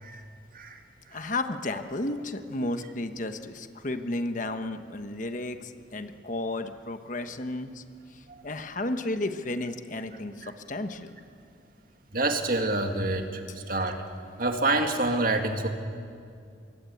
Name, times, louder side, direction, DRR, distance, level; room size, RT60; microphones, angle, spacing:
voice 1, 1.1-7.8 8.4-11.1, left 2 dB, 45° left, 8 dB, 1.2 m, -33 dB
voice 2, 12.1-13.4 13.7-14.0 14.4-15.7, right 2 dB, 50° right, 5 dB, 2.1 m, -27 dB
26.5 x 22.0 x 8.6 m, 2.4 s
head